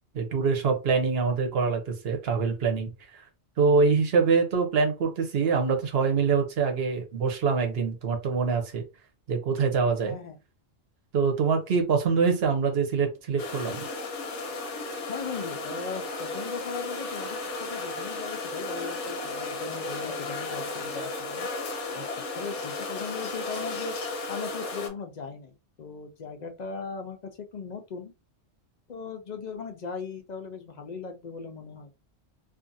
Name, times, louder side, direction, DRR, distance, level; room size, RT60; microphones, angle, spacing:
voice 1, 0.1-2.9 3.6-8.8 9.3-10.2 11.1-13.9, right 5 dB, 65° right, 0.9 m, -24 dB
voice 2, 10.0-10.4 15.1-21.5 21.9-22.1 22.3-23.9 24.3-28.1 28.9-31.9, left 5 dB, 60° left, 0.4 m, -38 dB
sound 1, 13.4-24.9, left 3 dB, 80° left, 1.0 m, -34 dB
2.5 x 2.4 x 2.6 m
omnidirectional pair, 1.2 m